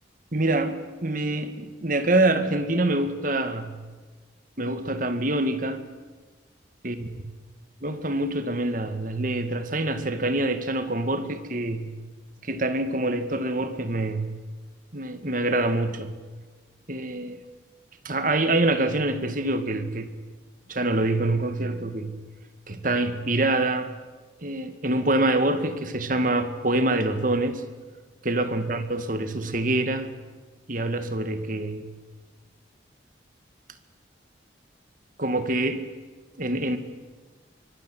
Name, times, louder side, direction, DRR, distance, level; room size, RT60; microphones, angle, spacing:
voice 1, 0.3-3.7 4.6-5.8 6.8-7.1 7.8-11.9 12.4-14.5 14.9-16.2 16.9-17.4 18.0-20.2 20.7-22.1 22.7-23.9 24.4-27.6 28.2-30.1 30.7-31.9 35.2-35.9 36.4-36.8, right 2 dB, 45° right, 9 dB, 2.1 m, -25 dB
24.5 x 23.5 x 9.4 m, 1.3 s
head